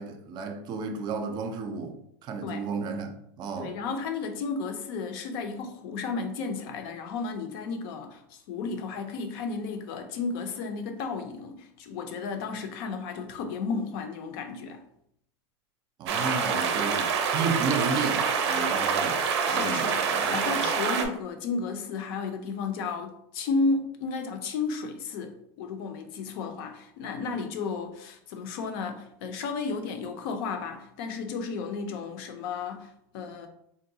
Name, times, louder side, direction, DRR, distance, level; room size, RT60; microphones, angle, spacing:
voice 1, 0.0-2.0 2.2-3.8 16.0-19.2 19.5-20.7, right 4 dB, 30° right, 0.4 m, -33 dB
voice 2, 3.6-14.8 19.4-33.5, left 4 dB, 60° left, 0.6 m, -33 dB
sound 1, 16.1-21.0, right 6 dB, 85° right, 0.5 m, -26 dB
3.6 x 2.2 x 2.7 m
supercardioid pair, 150°, 14 cm